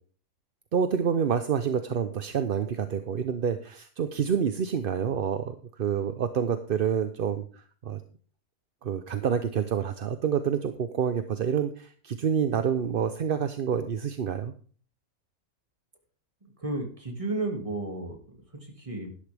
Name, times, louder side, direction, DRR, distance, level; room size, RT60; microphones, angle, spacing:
voice 1, 0.7-8.0 8.8-14.5, right 7 dB, 50° right, 10 dB, 0.7 m, -28 dB
voice 2, 16.6-19.1, right 2 dB, 25° right, 3 dB, 2.2 m, -33 dB
12.0 x 11.5 x 3.4 m, 0.43 s
omnidirectional pair, 1.5 m